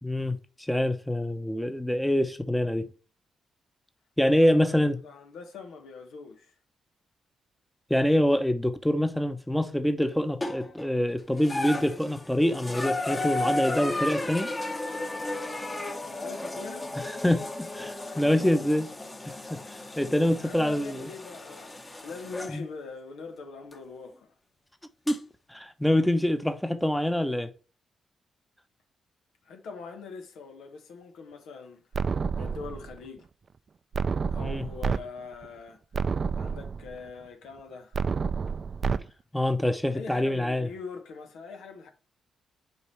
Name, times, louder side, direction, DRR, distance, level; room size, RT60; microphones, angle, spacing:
voice 1, 0.0-2.9 4.2-5.0 7.9-14.5 17.0-18.9 19.3-21.1 22.5-22.6 25.1-25.2 25.5-27.5 34.4-34.6 39.3-40.7, left 1 dB, 5° left, 0.9 m, -25 dB
voice 2, 4.3-6.5 16.0-16.9 18.0-18.7 20.4-24.3 29.4-32.1 32.4-33.3 34.3-35.8 36.4-38.0 39.1-39.2 39.9-41.9, left 4 dB, 75° left, 1.2 m, -43 dB
sound 1, 10.4-10.9 11.4-22.6 23.7-23.8 25.1-25.2, left 2 dB, 30° left, 1.4 m, -34 dB
sound 2, 31.9-33.0 33.9-35.0 35.4-35.5 35.9-37.0 37.9-39.0, right 5 dB, 50° right, 0.5 m, -29 dB
7.0 x 4.7 x 3.3 m
hypercardioid pair, 40°, 0 cm